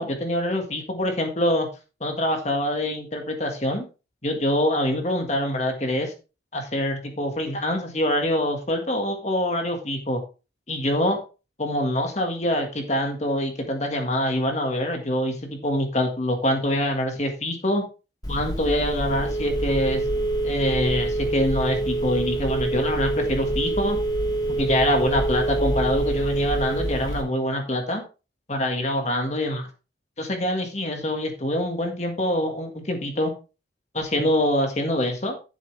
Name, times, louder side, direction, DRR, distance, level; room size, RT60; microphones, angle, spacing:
voice 1, 0.0-1.7 2.0-3.9 4.2-6.1 6.5-10.2 10.7-11.2 11.6-17.8 18.3-20.0 20.4-24.0 24.6-28.0 28.5-29.7 30.2-33.3 33.9-35.4, left 1 dB, 35° left, 4 dB, 1.8 m, -25 dB
Telephone, 18.2-27.2, right 2 dB, 20° left, 1.6 m, -26 dB
10.5 x 7.4 x 3.4 m, 0.31 s
head